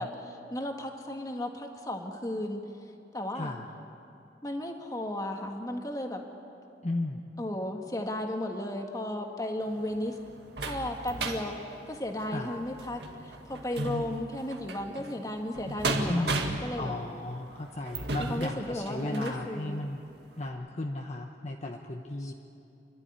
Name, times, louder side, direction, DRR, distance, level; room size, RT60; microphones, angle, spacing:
voice 1, 0.0-2.6 3.1-3.6 4.4-6.2 7.4-10.2 10.6-11.6 11.9-16.9 18.2-19.9 22.2-22.3, left 1 dB, 20° left, 3 dB, 1.7 m, -34 dB
voice 2, 3.3-3.7 6.8-7.2 12.3-12.5 16.1-16.4 16.8-20.0 20.4-22.3, left 2 dB, 40° left, 2 dB, 1.0 m, -35 dB
sound 1, 9.6-19.4 20.0-20.1 20.5-20.6, right 2 dB, 70° right, 2.0 m, -36 dB
29.0 x 12.0 x 9.8 m, 2.7 s
head